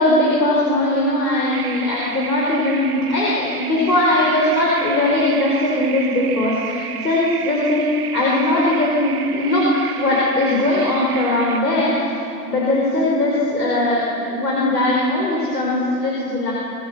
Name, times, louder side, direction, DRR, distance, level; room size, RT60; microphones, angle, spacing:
voice 1, 0.0-12.0 12.5-16.5, left 1 dB, 85° left, -4 dB, 5.0 m, -19 dB
sound 1, 1.5-11.6, right 8 dB, 65° right, 1.8 m, -32 dB
25.0 x 19.0 x 6.8 m, 2.7 s
hypercardioid pair, 110°, 48 cm